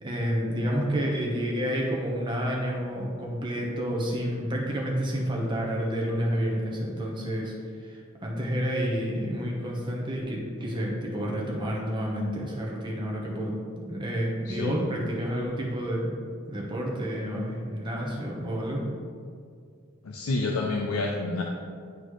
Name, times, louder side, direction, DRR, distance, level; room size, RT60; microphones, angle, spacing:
voice 1, 0.0-7.5 7.8-13.6 13.9-16.1 16.5-18.8, equal, 20° right, -2 dB, 1.0 m, -29 dB
voice 2, 14.5-14.8 20.0-21.4, left 3 dB, 80° left, 0 dB, 0.5 m, -28 dB
9.7 x 4.1 x 3.2 m, 2.2 s
head